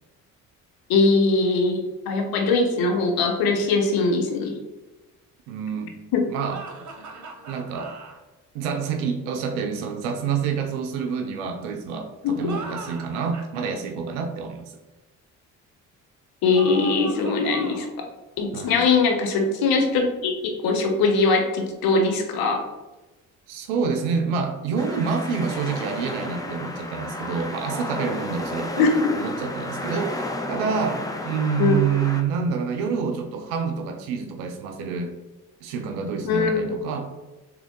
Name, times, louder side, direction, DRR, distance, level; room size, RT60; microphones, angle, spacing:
voice 1, 0.9-4.6 12.2-12.3 16.4-18.1 18.4-22.6 28.8-29.2 31.6-31.8 36.2-36.6, left 3 dB, 65° left, 4 dB, 0.8 m, -21 dB
voice 2, 5.5-6.0 6.3-6.6 7.5-7.9 8.5-14.8 18.5-18.8 23.5-28.9 29.1-35.1 35.6-37.1, right 6 dB, 80° right, 5 dB, 0.5 m, -27 dB
sound 1, 6.5-8.2 12.3-13.7 16.5-18.0, right 4 dB, 45° right, 0.9 m, -38 dB
sound 2, 24.8-32.2, left 2 dB, 10° left, 0.6 m, -32 dB
3.6 x 3.1 x 3.5 m, 1.1 s
hypercardioid pair, 50°, 40 cm